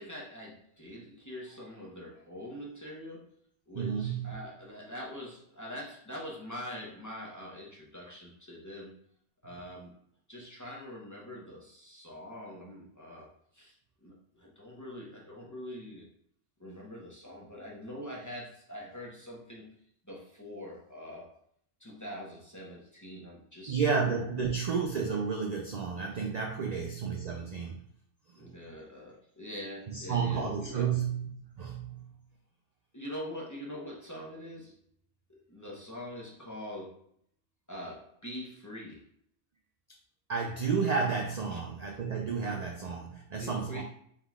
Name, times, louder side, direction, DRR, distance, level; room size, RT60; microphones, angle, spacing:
voice 1, 0.0-3.3 3.7-8.9 9.4-9.9 10.3-13.7 14.0-16.1 16.6-19.8 20.0-21.3 21.8-23.8 28.4-30.9 32.9-34.8 35.5-37.0 37.7-39.0 41.5-41.6 43.4-43.8, equal, 15° left, -4 dB, 0.8 m, -44 dB
voice 2, 3.7-4.3 23.7-27.8 28.4-28.5 29.9-32.1 40.3-43.8, right 5 dB, 50° right, 1 dB, 0.5 m, -31 dB
4.5 x 3.8 x 2.3 m, 0.66 s
omnidirectional pair, 1.2 m